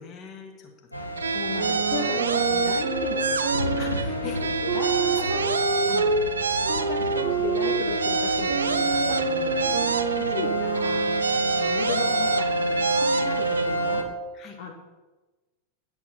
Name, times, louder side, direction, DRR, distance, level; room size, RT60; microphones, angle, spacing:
voice 1, 0.0-1.4 2.2-2.3 3.8-5.4 9.6-10.0 14.3-14.6, left 4 dB, 30° left, 2 dB, 2.0 m, -44 dB
sound 1, 0.9-14.0, right 1 dB, 85° left, 1.0 m, -29 dB
sound 2, 1.2-4.1 4.3-7.3 7.5-10.5 10.7-13.7, right 4 dB, 70° right, 0.5 m, -28 dB
voice 2, 1.3-3.9 4.6-6.1 6.6-9.6 10.2-11.1 11.6-14.0 14.6-14.7, left 5 dB, 55° left, 0 dB, 1.1 m, -36 dB
sound 3, 1.5-6.2 6.6-11.6, right 5 dB, 55° right, 1.1 m, -28 dB
10.0 x 6.0 x 5.6 m, 1.2 s
figure-of-eight pair, 90°, 0 cm